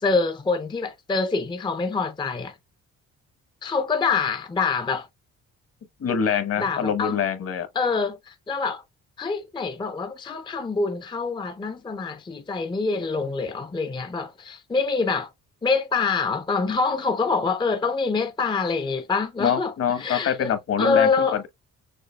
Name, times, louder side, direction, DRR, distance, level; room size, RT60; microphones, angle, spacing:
voice 1, 0.0-2.5 3.6-5.1 6.6-7.2 7.7-8.8 9.2-15.3 15.6-21.4, left 4 dB, 15° left, 0.5 m, -25 dB
voice 2, 6.0-7.7 19.4-21.5, left 7 dB, 50° left, 1.1 m, -25 dB
6.6 x 2.5 x 2.2 m
cardioid pair, 90°, 30 cm